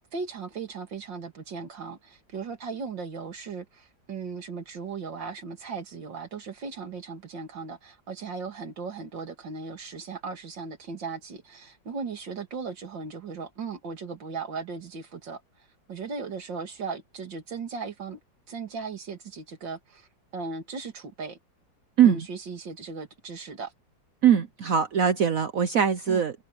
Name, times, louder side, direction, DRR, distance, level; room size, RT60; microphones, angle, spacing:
voice 1, 0.1-15.4 15.9-18.2 18.5-21.4 22.0-23.7 26.1-26.2, right 5 dB, 80° right, 3.1 m, -37 dB
voice 2, 24.2-26.3, right 8 dB, 55° right, 1.2 m, -21 dB
omnidirectional pair, 2.0 m